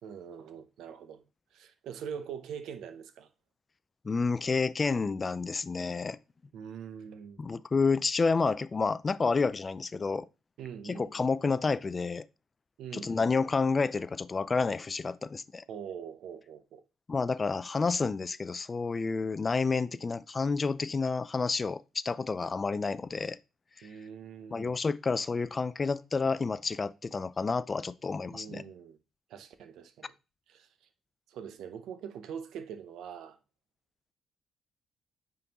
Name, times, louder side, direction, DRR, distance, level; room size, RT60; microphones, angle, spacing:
voice 1, 0.0-1.2 1.5-3.3 6.5-7.4 10.6-11.1 12.8-13.1 15.7-16.8 23.8-24.8 28.3-29.0 29.3-30.1 30.5-30.9 31.3-33.4, right 7 dB, 80° right, 0.7 m, -43 dB
voice 2, 4.0-6.2 7.4-10.3 10.8-12.3 12.9-15.6 17.1-23.4 24.5-28.6, left 4 dB, 30° left, 0.3 m, -29 dB
9.0 x 3.7 x 2.9 m
cardioid pair, 90°, 0 cm